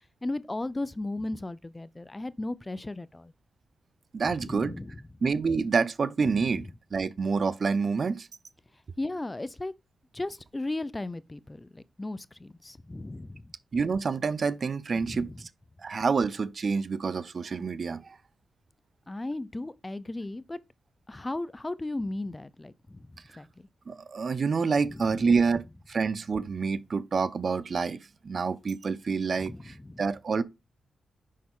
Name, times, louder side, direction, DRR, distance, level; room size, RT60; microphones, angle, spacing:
voice 1, 0.2-3.3 4.2-5.0 6.2-6.5 9.0-9.7 10.1-13.5 15.0-15.4 19.1-20.6 21.1-23.5 24.8-25.4 29.4-30.0, left 2 dB, 20° left, 0.5 m, -36 dB
voice 2, 4.1-4.7 5.2-8.3 13.7-15.5 15.8-18.2 23.9-28.0 28.2-30.4, right 5 dB, 55° right, 0.6 m, -28 dB
6.4 x 5.8 x 3.7 m
cardioid pair, 60°, 0 cm